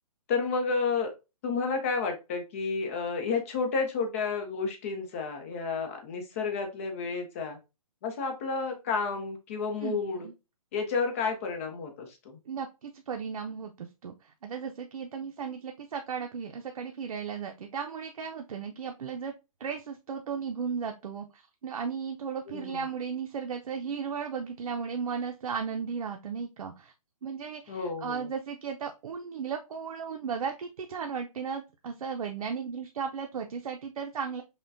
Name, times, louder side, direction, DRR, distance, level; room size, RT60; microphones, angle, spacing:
voice 1, 0.3-1.1 1.4-7.6 8.0-10.3 10.7-12.4 22.5-22.9 27.7-28.3, left 4 dB, 25° left, 3 dB, 0.6 m, -31 dB
voice 2, 9.8-10.3 12.5-19.3 19.6-26.9 27.2-34.4, right 6 dB, 80° right, 3 dB, 0.6 m, -35 dB
5.7 x 2.2 x 2.5 m, 0.26 s
hypercardioid pair, 170°, 19 cm